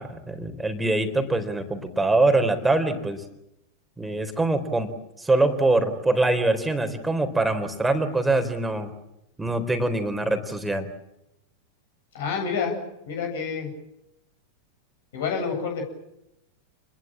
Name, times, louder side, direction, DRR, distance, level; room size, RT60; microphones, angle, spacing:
voice 1, 0.0-3.2 4.0-4.9 5.2-8.9 9.4-10.9, right 2 dB, 10° right, 7 dB, 4.0 m, -23 dB
voice 2, 12.1-12.8 13.1-13.7 15.1-15.9, left 5 dB, 55° left, 3 dB, 7.9 m, -28 dB
29.5 x 21.5 x 7.5 m, 0.88 s
figure-of-eight pair, 90°, 0 cm